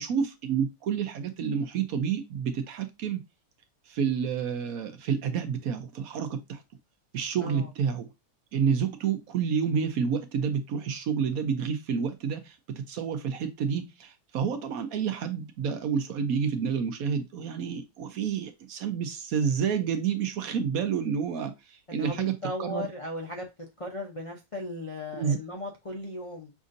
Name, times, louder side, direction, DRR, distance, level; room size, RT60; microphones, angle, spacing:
voice 1, 0.0-3.2 3.9-6.6 7.1-8.1 8.5-22.9 25.1-25.4, right 7 dB, 70° right, 1.1 m, -29 dB
voice 2, 21.9-23.5 23.8-26.5, left 1 dB, 40° left, 0.4 m, -36 dB
6.0 x 2.6 x 2.6 m
omnidirectional pair, 1.7 m